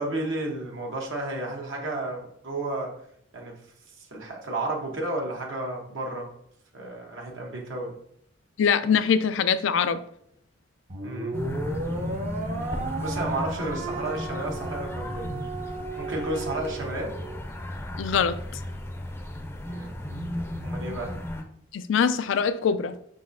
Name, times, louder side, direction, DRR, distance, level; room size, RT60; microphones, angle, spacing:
voice 1, 0.0-2.9 3.3-3.5 4.0-6.3 6.7-7.9 11.0-11.4 13.0-15.3 16.0-17.1 19.7-19.9 20.6-21.1, right 2 dB, 80° right, -1 dB, 1.0 m, -32 dB
voice 2, 8.6-10.0 18.0-18.4 21.7-22.9, left 6 dB, 70° left, 14 dB, 0.3 m, -23 dB
sound 1, 10.9-17.4, right 2 dB, 35° right, 0.6 m, -35 dB
sound 2, 11.3-21.4, left 1 dB, 15° left, 0.5 m, -35 dB
5.4 x 3.8 x 2.6 m, 0.70 s
head